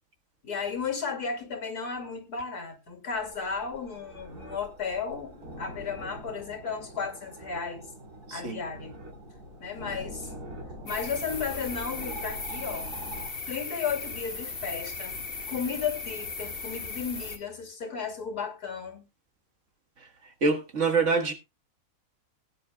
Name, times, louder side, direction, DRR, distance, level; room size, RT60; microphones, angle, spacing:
voice 1, 0.4-7.9 8.3-9.0 9.6-10.3 10.8-13.0 13.5-15.1 15.5-19.0, left 6 dB, 85° left, 2.9 m, -34 dB
sound 1, 3.1-13.3, right 1 dB, 85° right, 3.5 m, -44 dB
voice 2, 8.3-8.6 20.0-21.3, right 4 dB, 50° right, 1.8 m, -26 dB
sound 2, 10.9-17.4, left 3 dB, 35° left, 2.0 m, -37 dB
19.5 x 9.7 x 2.3 m
omnidirectional pair, 1.6 m